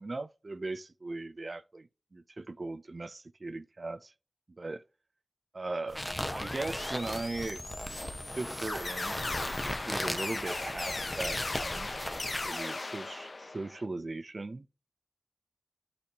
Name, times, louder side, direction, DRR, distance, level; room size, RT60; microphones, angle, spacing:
voice 1, 0.0-4.1 4.6-4.8 5.5-6.0 6.3-7.6 8.3-9.3 9.8-11.9 12.4-14.7, right 2 dB, 60° right, 0.5 m, -38 dB
sound 1, 5.9-12.6, left 1 dB, 15° left, 0.9 m, -38 dB
sound 2, 6.2-9.8, left 2 dB, 55° left, 0.3 m, -46 dB
sound 3, 8.7-13.8, left 3 dB, 70° left, 0.8 m, -37 dB
11.5 x 4.2 x 2.8 m
cardioid pair, 45°, 0 cm